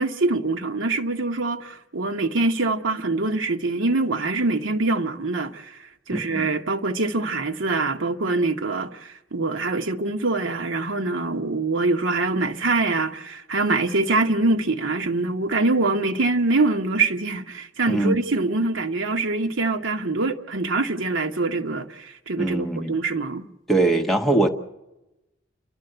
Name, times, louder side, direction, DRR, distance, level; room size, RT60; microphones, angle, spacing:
voice 1, 0.0-23.5, right 3 dB, 70° right, 1.0 m, -24 dB
voice 2, 6.1-6.5 17.9-18.2 22.4-23.0 23.7-24.5, right 2 dB, ahead, 1.4 m, -22 dB
30.0 x 11.5 x 7.9 m
head